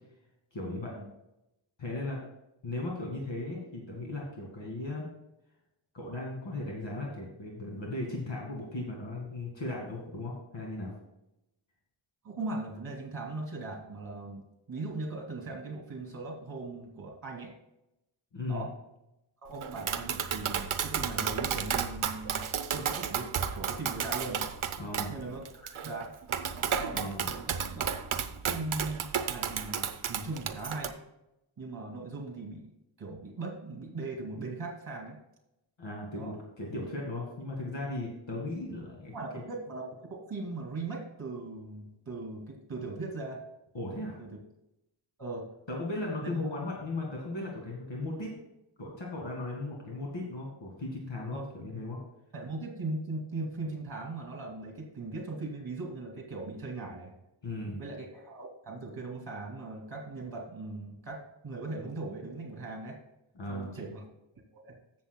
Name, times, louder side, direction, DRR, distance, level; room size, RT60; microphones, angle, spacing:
voice 1, 0.5-1.0 1.8-2.2 2.6-5.1 5.9-10.9 18.3-18.7 24.8-25.2 26.9-27.3 35.8-39.1 43.7-44.2 45.7-48.3 48.8-52.0 57.4-57.8 63.4-63.7, left 2 dB, 65° left, -2 dB, 2.0 m, -37 dB
voice 2, 12.2-17.5 18.5-18.7 19.4-22.4 22.7-24.4 25.1-26.1 26.8-27.1 27.5-27.9 28.5-30.9 31.6-32.7 33.0-35.2 36.1-36.3 39.1-43.4 44.2-44.3 45.2-45.5 46.2-46.3 51.3-51.5 52.3-57.1 57.8-63.0 63.5-64.0 64.5-64.8, right 3 dB, 45° right, 0 dB, 2.4 m, -39 dB
Tap, 19.6-30.9, right 7 dB, 80° right, 0.8 m, -33 dB
15.5 x 7.1 x 2.2 m, 0.89 s
wide cardioid pair, 105°, 49 cm